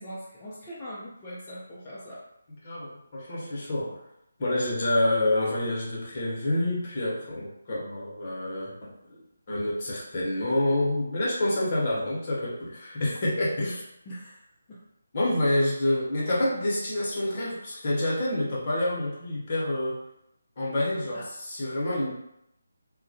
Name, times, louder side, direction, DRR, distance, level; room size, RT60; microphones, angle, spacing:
voice 1, 0.0-2.2 13.6-13.8 14.1-14.4 14.7-14.8 21.1-21.3, equal, 20° left, -10 dB, 0.5 m, -41 dB
voice 2, 2.6-4.0 4.4-13.8 15.1-20.0 20.6-22.1, left 1 dB, 40° left, -5 dB, 0.8 m, -28 dB
2.1 x 2.1 x 2.7 m, 0.79 s
figure-of-eight pair, 155°, 0 cm